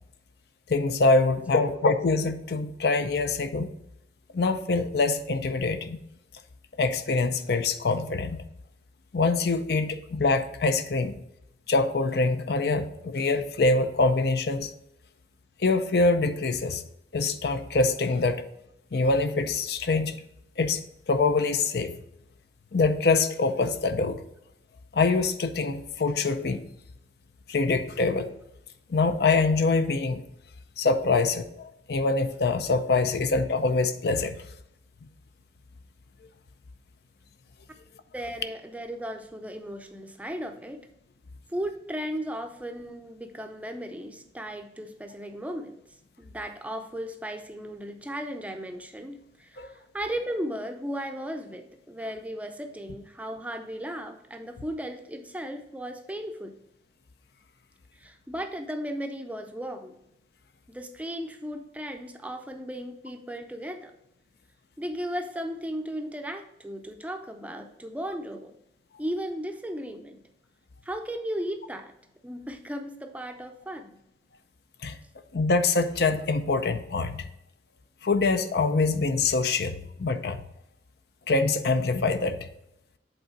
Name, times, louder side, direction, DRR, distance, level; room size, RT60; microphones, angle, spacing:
voice 1, 0.7-3.7 4.3-6.0 6.8-8.4 9.1-11.2 11.7-14.7 15.6-16.8 17.1-18.4 18.9-20.2 20.6-20.8 21.1-21.9 22.7-24.2 24.9-26.6 27.5-28.3 28.9-30.2 30.8-34.4 49.6-49.7 74.8-75.0 75.3-77.3 78.0-80.4 81.3-82.4, left 3 dB, 60° left, 10 dB, 0.5 m, -24 dB
voice 2, 38.1-40.8 41.5-45.8 46.2-56.6 57.9-60.0 60.7-63.9 64.8-68.6 69.0-70.2 70.8-71.9 72.2-74.0, equal, 10° right, 5 dB, 0.5 m, -36 dB
8.0 x 3.9 x 4.5 m, 0.81 s
head